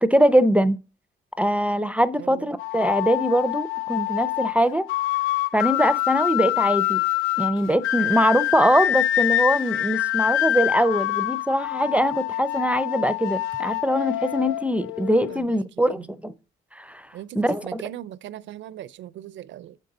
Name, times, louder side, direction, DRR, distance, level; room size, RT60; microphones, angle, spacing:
voice 1, 0.0-0.8 1.4-4.8 5.5-7.0 7.4-16.3 16.8-17.0 17.3-17.8, equal, 5° right, 0.5 m, -22 dB
voice 2, 2.2-2.5 15.3-15.7 15.9-16.1 17.1-19.8, right 12 dB, 70° right, 0.5 m, -39 dB
sound 1, 2.6-15.4, left 14 dB, 85° left, 0.5 m, -26 dB
6.4 x 5.3 x 3.8 m
cardioid pair, 90°, 20 cm